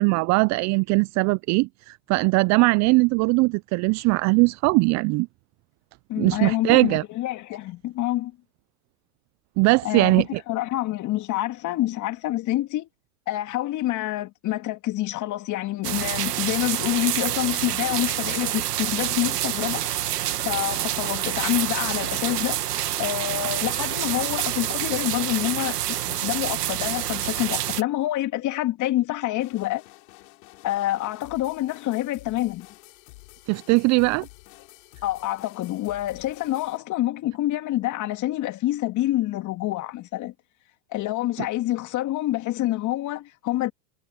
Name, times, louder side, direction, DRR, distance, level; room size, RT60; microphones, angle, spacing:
voice 1, 0.0-5.3 6.2-7.0 9.6-10.2 33.5-34.3, right 26 dB, 35° right, 0.6 m, -20 dB
voice 2, 6.1-8.3 9.8-12.9 13.3-19.8 20.4-22.6 23.0-25.8 26.0-29.8 30.6-32.7 35.0-40.3 40.9-43.7, left 15 dB, 40° left, 2.3 m, -27 dB
sound 1, 15.8-27.8, right 12 dB, 80° right, 2.0 m, -27 dB
sound 2, 29.4-36.8, left 26 dB, 60° left, 6.3 m, -49 dB
hypercardioid pair, 100°, 46 cm